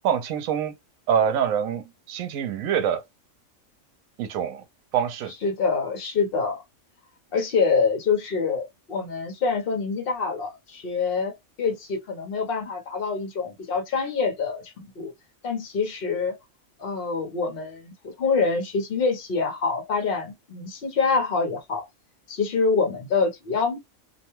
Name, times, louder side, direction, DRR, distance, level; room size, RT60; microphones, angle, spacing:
voice 1, 0.0-0.7 1.1-3.0 4.2-4.6 4.9-5.3, right 8 dB, 80° right, 1.0 m, -25 dB
voice 2, 5.4-6.6 7.3-15.1 15.4-16.4 16.8-21.8 22.3-23.8, left 4 dB, 50° left, 1.0 m, -26 dB
2.6 x 2.2 x 3.0 m
omnidirectional pair, 1.4 m